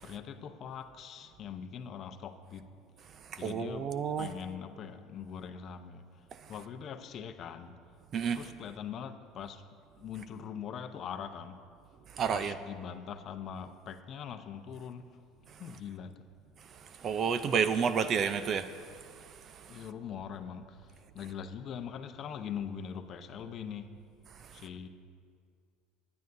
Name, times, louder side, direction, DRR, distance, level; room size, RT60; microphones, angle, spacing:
voice 1, 0.0-2.7 3.4-6.0 6.5-7.8 8.3-9.6 10.0-11.6 12.3-15.2 15.6-16.3 19.7-23.9 24.5-24.9, left 7 dB, 40° left, 8 dB, 0.7 m, -42 dB
voice 2, 3.3-4.3 8.1-8.4 12.2-12.5 17.0-18.7, right 7 dB, 35° right, 11 dB, 0.5 m, -30 dB
21.5 x 9.5 x 2.6 m, 2.2 s
cardioid pair, 135°, 0 cm